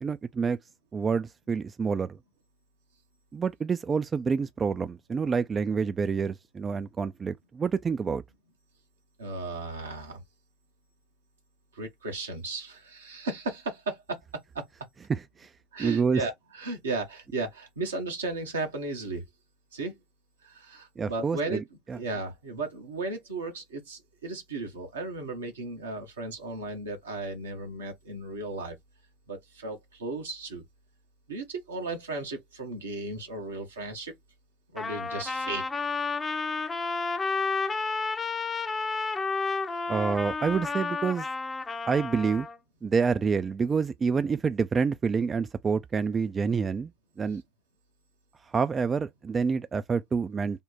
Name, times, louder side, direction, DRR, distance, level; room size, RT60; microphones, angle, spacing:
voice 1, 0.0-0.6 0.9-2.2 3.3-8.2 15.1-15.5 15.8-16.2 21.0-22.0 39.9-41.3 41.9-42.5 42.8-46.9 47.2-47.4 48.5-50.6, right 5 dB, 30° right, 0.3 m, -28 dB
voice 2, 9.2-10.2 11.7-14.2 14.5-14.6 15.7-19.2 19.7-20.0 20.4-21.6 21.9-28.8 29.3-30.6 31.3-34.1 34.7-35.6, right 3 dB, 80° right, 1.0 m, -35 dB
Trumpet, 34.8-42.6, left 4 dB, 20° left, 0.6 m, -31 dB
3.5 x 2.1 x 4.0 m
figure-of-eight pair, 65°, 0 cm